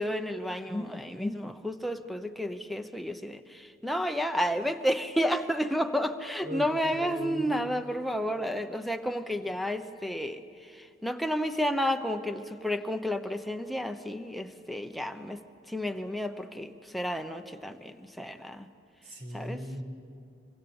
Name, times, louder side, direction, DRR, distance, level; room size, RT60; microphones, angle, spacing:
voice 1, 0.0-15.4 15.7-18.7 19.3-19.6, equal, ahead, 6 dB, 0.9 m, -31 dB
voice 2, 6.9-7.6 19.0-19.8, equal, 75° right, 4 dB, 4.6 m, -38 dB
25.5 x 24.5 x 7.1 m, 2.3 s
head